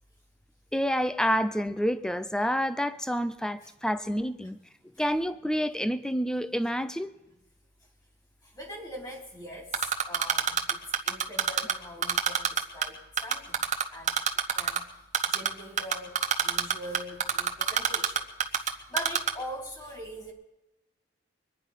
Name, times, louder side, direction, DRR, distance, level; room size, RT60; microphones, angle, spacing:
voice 1, 0.7-4.6 5.0-7.1, equal, 5° left, 13 dB, 0.6 m, -28 dB
voice 2, 8.4-14.2 14.5-15.0 15.3-18.2 18.5-20.3, equal, 20° left, 1 dB, 3.6 m, -42 dB
Typing, 9.7-11.7 12.0-12.9 13.2-14.8 15.1-15.5 15.8-18.7 19.0-19.3, right 7 dB, 40° right, 1.1 m, -24 dB
23.5 x 10.0 x 5.6 m, 0.98 s
head